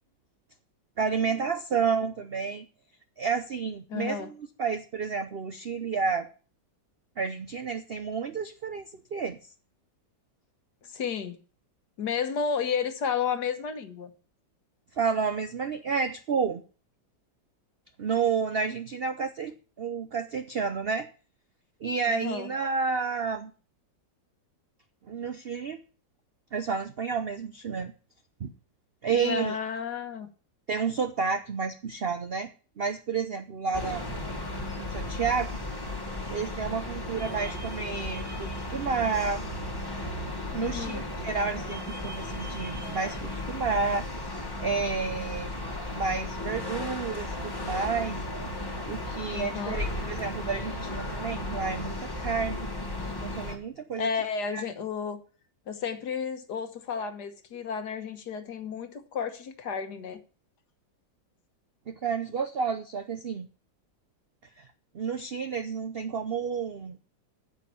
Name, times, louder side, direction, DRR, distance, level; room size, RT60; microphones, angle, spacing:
voice 1, 1.0-2.7 3.2-6.3 7.2-9.4 15.0-16.6 18.0-21.1 21.8-23.5 25.1-25.8 26.5-27.9 28.4-28.5 29.0-29.6 30.7-32.5 32.8-34.0 34.8-35.6 36.3-39.4 40.5-44.0 44.6-45.5 45.9-48.2 48.9-52.7 53.2-54.1 54.5-54.6 61.9-63.5 64.6-64.7 64.9-67.0, right 5 dB, 70° right, 9 dB, 0.5 m, -30 dB
voice 2, 3.9-4.3 10.8-11.4 12.0-14.1 22.1-22.5 29.1-30.3 40.6-41.1 49.3-49.8 54.0-55.2 55.7-60.2, left 6 dB, 65° left, 9 dB, 1.7 m, -32 dB
sound 1, 33.7-53.6, left 1 dB, 15° left, 1.5 m, -35 dB
9.4 x 7.4 x 6.9 m, 0.38 s
omnidirectional pair, 2.0 m